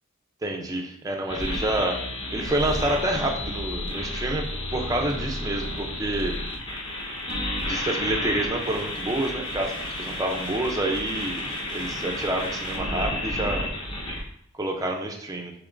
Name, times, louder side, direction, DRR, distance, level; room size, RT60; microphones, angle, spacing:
voice 1, 0.4-2.0 2.3-6.3 7.6-9.7 10.0-11.4 11.7-13.6 14.5-15.5, right 1 dB, 15° right, 2 dB, 0.5 m, -28 dB
sound 1, 1.3-14.2, left 1 dB, 25° left, 0.9 m, -31 dB
6.7 x 3.1 x 2.5 m, 0.69 s
head